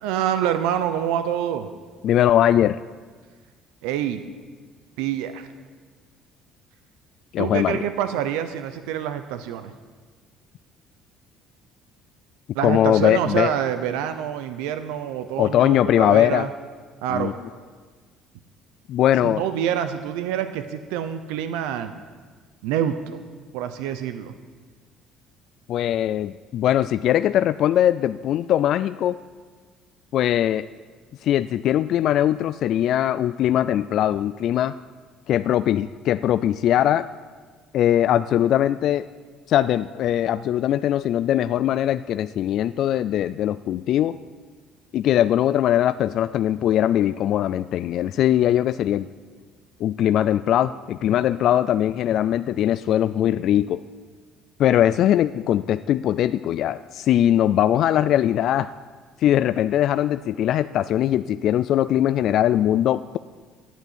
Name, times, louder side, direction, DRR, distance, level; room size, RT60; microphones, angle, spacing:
voice 1, 0.0-1.7 3.8-4.2 5.0-5.5 7.4-9.7 12.5-16.5 17.0-17.3 19.2-21.9 22.6-23.0 23.5-24.3, right 10 dB, 90° right, 10 dB, 0.7 m, -26 dB
voice 2, 2.0-2.8 7.3-7.8 12.6-13.5 15.4-16.5 17.1-17.3 18.9-19.5 25.7-29.2 30.1-30.7 31.2-34.7 35.3-37.1 37.7-39.1 39.5-44.2 44.9-49.1 49.8-53.8 54.6-58.7 59.2-63.2, left 11 dB, 60° left, 13 dB, 0.3 m, -21 dB
11.5 x 9.1 x 8.1 m, 1.5 s
cardioid pair, 100°, 0 cm